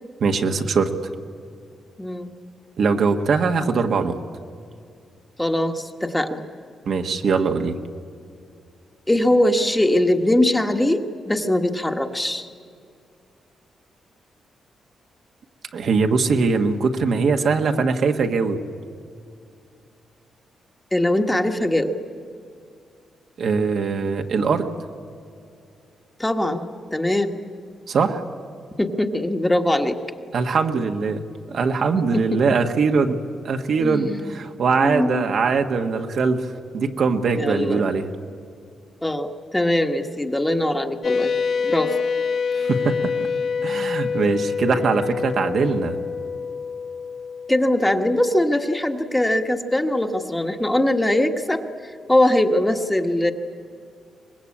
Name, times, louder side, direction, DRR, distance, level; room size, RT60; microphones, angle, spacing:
voice 1, 0.2-0.9 2.8-4.1 6.8-7.8 15.7-18.6 23.4-24.7 27.9-28.2 30.3-31.2 31.5-33.2 33.4-38.0 42.6-43.1 43.6-46.0, right 4 dB, 60° right, 5 dB, 1.5 m, -21 dB
voice 2, 2.0-2.3 5.4-6.4 9.1-12.5 20.9-22.0 26.2-27.4 28.8-30.0 31.9-32.4 33.8-34.3 34.8-35.2 37.4-37.8 39.0-41.3 41.6-42.0 44.7-44.8 47.5-53.3, left 1 dB, 10° left, 5 dB, 1.3 m, -21 dB
sound 1, 41.0-49.1, left 5 dB, 45° left, 1.0 m, -27 dB
24.0 x 20.5 x 8.7 m, 2.4 s
cardioid pair, 120°, 0 cm